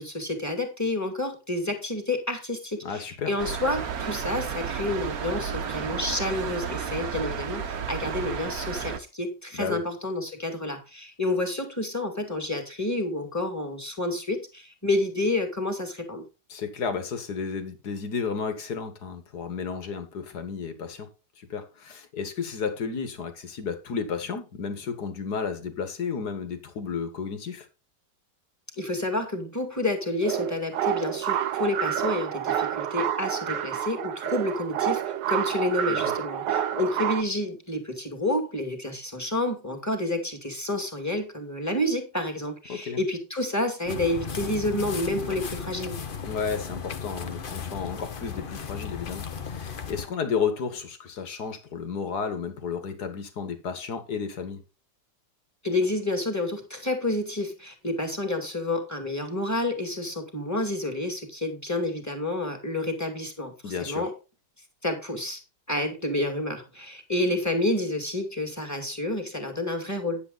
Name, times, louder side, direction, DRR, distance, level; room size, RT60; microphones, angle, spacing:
voice 1, 0.0-16.2 28.8-46.0 55.6-63.5 63.8-64.1 64.8-65.4 65.7-70.2, left 1 dB, 10° left, 2.3 m, -29 dB
voice 2, 2.8-3.3 9.5-9.8 16.5-21.1 21.4-27.7 35.9-36.1 42.7-43.0 46.2-54.6 63.6-64.1, left 6 dB, 65° left, 2.2 m, -32 dB
sound 1, 3.4-9.0, right 7 dB, 60° right, 1.5 m, -32 dB
sound 2, 30.2-37.2, right 10 dB, 85° right, 1.5 m, -28 dB
sound 3, 43.9-50.1, left 6 dB, 40° left, 0.9 m, -35 dB
10.0 x 8.3 x 4.1 m
omnidirectional pair, 1.9 m